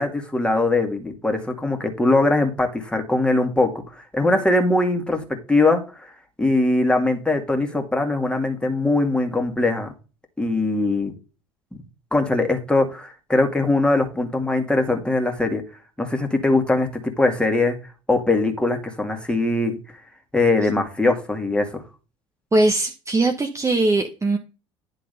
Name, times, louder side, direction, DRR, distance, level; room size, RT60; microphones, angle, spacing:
voice 1, 0.0-3.7 4.1-5.2 5.5-6.1 6.4-9.9 10.4-11.1 12.1-15.6 16.0-17.8 18.1-19.8 20.3-21.8, left 2 dB, 5° left, 4 dB, 2.2 m, -21 dB
voice 2, 22.5-24.4, right 2 dB, 20° right, 4 dB, 1.1 m, -20 dB
10.5 x 4.0 x 5.2 m, 0.33 s
figure-of-eight pair, 65°, 15 cm